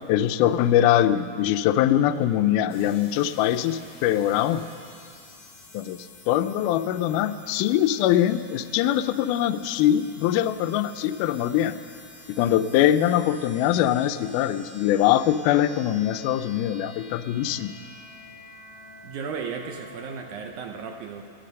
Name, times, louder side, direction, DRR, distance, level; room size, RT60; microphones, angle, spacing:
voice 1, 0.1-4.7 5.7-11.8 12.3-17.8, left 11 dB, 85° left, 10 dB, 1.8 m, -22 dB
sound 1, 2.7-20.5, left 2 dB, 60° left, 0.8 m, -49 dB
voice 2, 19.0-21.2, right 6 dB, 75° right, 3 dB, 1.9 m, -35 dB
19.5 x 12.0 x 5.4 m, 2.3 s
omnidirectional pair, 4.2 m